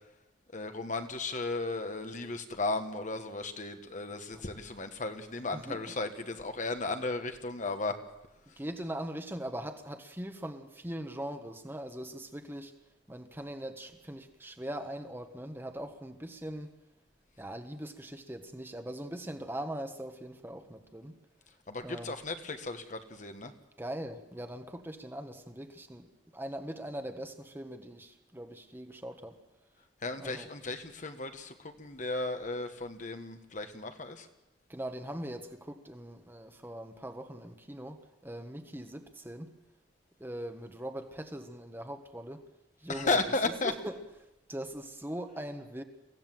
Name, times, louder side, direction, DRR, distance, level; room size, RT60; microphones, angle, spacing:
voice 1, 0.5-8.0 21.7-23.5 30.0-34.3 42.9-43.7, left 3 dB, 45° left, 7 dB, 1.4 m, -35 dB
voice 2, 5.5-5.9 8.6-12.7 13.1-16.7 17.4-21.1 21.8-22.2 23.8-26.1 26.3-29.4 30.2-30.5 34.7-39.5 40.2-42.4 42.8-43.2 43.6-44.0 44.5-45.8, right 1 dB, 10° right, 6 dB, 1.3 m, -41 dB
23.5 x 16.0 x 7.6 m, 0.95 s
head